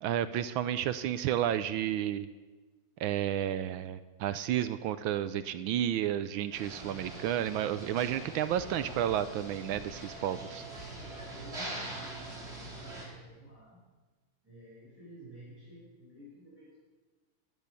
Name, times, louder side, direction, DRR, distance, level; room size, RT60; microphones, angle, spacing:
voice 1, 0.0-2.3 3.0-10.6, right 11 dB, 80° right, 12 dB, 1.4 m, -31 dB
sound 1, 6.5-13.1, right 2 dB, 30° right, 3.7 m, -43 dB
voice 2, 10.9-13.8 14.4-16.7, equal, 5° right, -9 dB, 5.8 m, -52 dB
15.0 x 11.0 x 6.9 m, 1.3 s
omnidirectional pair, 2.3 m